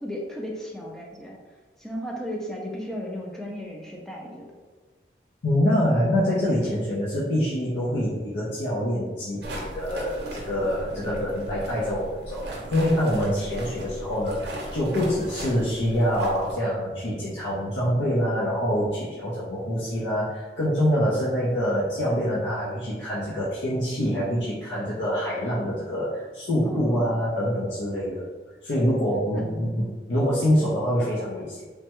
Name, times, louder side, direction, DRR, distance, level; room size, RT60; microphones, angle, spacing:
voice 1, 0.0-1.4 1.8-4.5 6.4-6.7 13.2-13.3 26.7-27.1 29.3-29.5, equal, 5° left, -1 dB, 0.3 m, -35 dB
voice 2, 5.4-28.2 28.6-31.6, equal, 85° left, -8 dB, 0.6 m, -25 dB
sound 1, 9.4-16.5, right 1 dB, 70° right, 0.6 m, -36 dB
3.2 x 2.2 x 2.9 m, 1.3 s
head